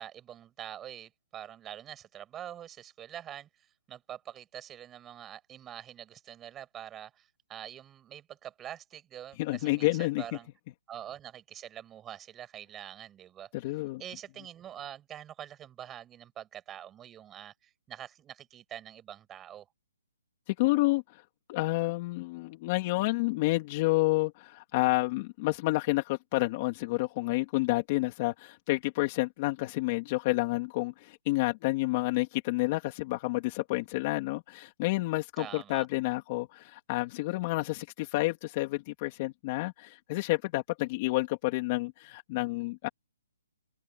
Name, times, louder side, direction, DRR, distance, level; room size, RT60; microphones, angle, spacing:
voice 1, 0.0-10.5 10.9-13.5 14.0-19.7 35.4-35.9, right 10 dB, 10° right, 7.5 m, -45 dB
voice 2, 9.4-10.2 13.5-14.0 20.5-21.2 21.5-42.9, left 21 dB, 25° left, 2.9 m, -29 dB
hypercardioid pair, 165°, 0 cm